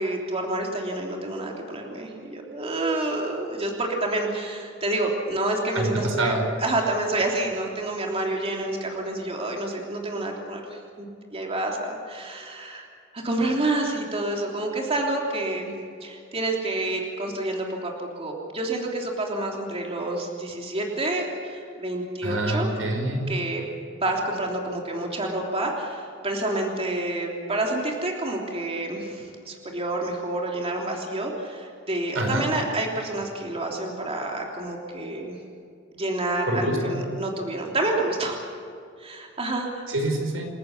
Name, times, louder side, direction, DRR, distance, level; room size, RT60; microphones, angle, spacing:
voice 1, 0.0-12.9 13.1-15.7 16.0-22.7 23.3-23.6 23.9-35.4 35.9-38.4 39.0-39.8, right 2 dB, 30° right, 0 dB, 3.3 m, -28 dB
voice 2, 5.8-6.4 22.2-23.3 32.2-32.5 36.5-37.0 39.9-40.5, right 1 dB, 85° right, 3 dB, 5.3 m, -26 dB
28.5 x 14.5 x 8.6 m, 2.4 s
head